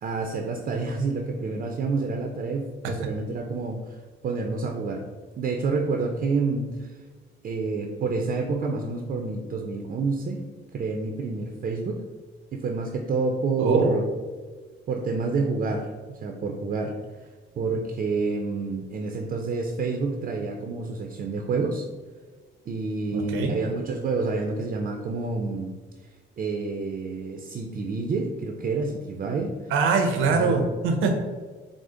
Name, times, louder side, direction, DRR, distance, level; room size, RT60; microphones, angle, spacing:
voice 1, 0.0-4.0 4.2-5.1 5.4-6.9 7.4-10.4 10.7-12.0 12.5-14.0 14.9-17.3 17.6-21.9 22.7-25.8 26.4-29.7 30.1-30.6, right 4 dB, 45° right, 2 dB, 0.5 m, -28 dB
voice 2, 13.6-13.9 23.1-23.5 29.7-31.1, right 4 dB, 90° right, 4 dB, 0.7 m, -22 dB
4.8 x 2.0 x 3.7 m, 1.4 s
cardioid pair, 90°, 20 cm